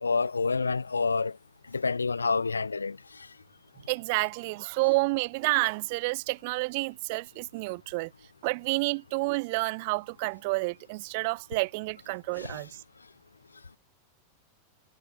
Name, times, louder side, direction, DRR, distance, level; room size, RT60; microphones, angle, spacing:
voice 1, 0.0-1.3 1.7-3.0 12.4-12.6, left 4 dB, 75° left, 1.1 m, -28 dB
voice 2, 3.9-8.1 8.4-12.7, right 26 dB, 50° right, 0.4 m, -29 dB
figure-of-eight pair, 90°, 0 cm